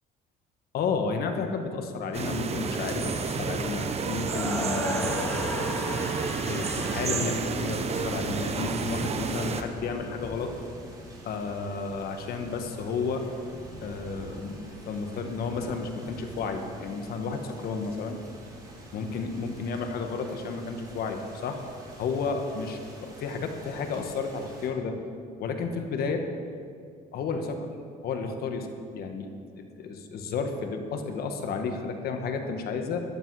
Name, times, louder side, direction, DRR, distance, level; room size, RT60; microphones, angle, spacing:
voice 1, 0.7-5.9 6.5-10.5 11.2-13.2 13.8-18.2 18.9-21.6 22.0-24.9 25.4-26.2 27.1-27.7 28.0-28.7 28.9-29.3 29.6-33.0, left 4 dB, 65° left, 5 dB, 1.5 m, -32 dB
sound 1, 2.1-9.6, right 5 dB, 40° right, 1.0 m, -30 dB
sound 2, 4.2-8.4, left 1 dB, 10° left, 2.7 m, -35 dB
sound 3, 8.0-24.7, right 1 dB, 20° right, 4.1 m, -46 dB
14.0 x 12.0 x 4.8 m, 2.2 s
cardioid pair, 110°, 17 cm